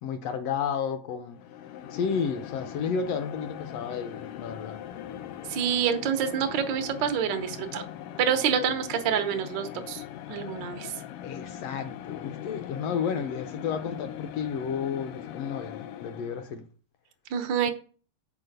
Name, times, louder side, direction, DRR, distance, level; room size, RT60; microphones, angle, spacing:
voice 1, 0.0-1.4 1.9-4.8 11.2-16.6, left 6 dB, 75° left, 1.6 m, -32 dB
sound 1, 1.3-16.6, left 11 dB, 90° left, 1.3 m, -41 dB
voice 2, 5.5-7.8 8.2-10.0 10.3-10.9 17.3-17.7, right 8 dB, 75° right, 1.0 m, -27 dB
6.1 x 4.7 x 6.6 m
omnidirectional pair, 3.4 m